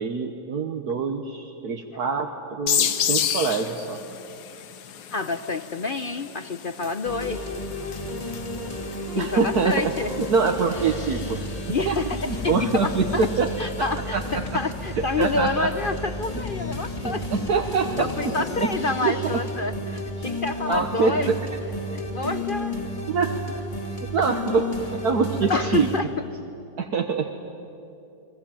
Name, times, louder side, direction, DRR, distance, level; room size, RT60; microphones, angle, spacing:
voice 1, 0.0-4.0 9.1-9.9 10.3-11.4 11.9-12.0 12.2-13.5 14.1-14.2 15.2-15.7 17.0-18.3 18.6-18.7 19.0-19.2 20.7-21.4 23.1-23.3 24.1-25.9 26.8-27.3, right 4 dB, 65° right, 4 dB, 1.7 m, -24 dB
sound 1, 2.7-14.0, left 9 dB, 75° left, 1.5 m, -33 dB
voice 2, 5.1-7.5 9.1-10.1 11.7-13.3 13.6-17.3 18.0-21.3 21.9-22.7 25.5-26.1, left 3 dB, 50° left, 10 dB, 0.6 m, -28 dB
sound 2, 7.0-26.0, left 1 dB, 20° left, 2.1 m, -32 dB
30.0 x 21.5 x 8.9 m, 2.7 s
omnidirectional pair, 1.8 m